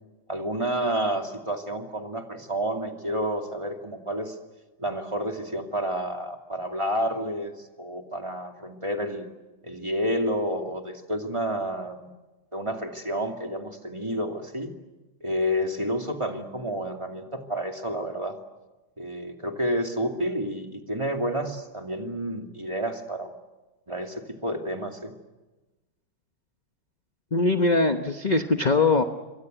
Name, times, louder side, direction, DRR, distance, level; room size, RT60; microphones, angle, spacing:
voice 1, 0.3-4.4 4.8-9.3 9.6-12.1 12.5-14.7 15.2-18.4 19.0-23.3 23.9-25.1, equal, 15° right, 4 dB, 2.5 m, -30 dB
voice 2, 27.3-29.0, left 3 dB, 30° left, 7 dB, 0.9 m, -21 dB
28.0 x 24.0 x 8.1 m, 1.1 s
omnidirectional pair, 2.1 m